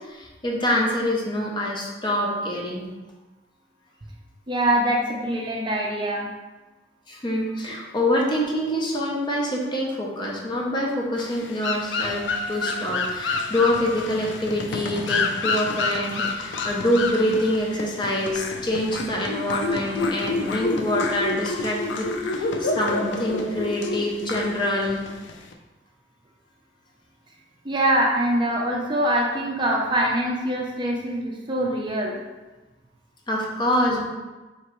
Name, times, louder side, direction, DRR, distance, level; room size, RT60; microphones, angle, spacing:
voice 1, 0.0-2.9 7.1-25.0 33.3-34.1, left 1 dB, 25° left, -2 dB, 0.7 m, -25 dB
voice 2, 4.5-6.3 7.7-7.8 27.6-32.2, right 1 dB, 25° right, -2 dB, 0.5 m, -24 dB
sound 1, 11.2-25.5, left 3 dB, 70° left, 0.4 m, -28 dB
4.5 x 2.9 x 3.0 m, 1.2 s
head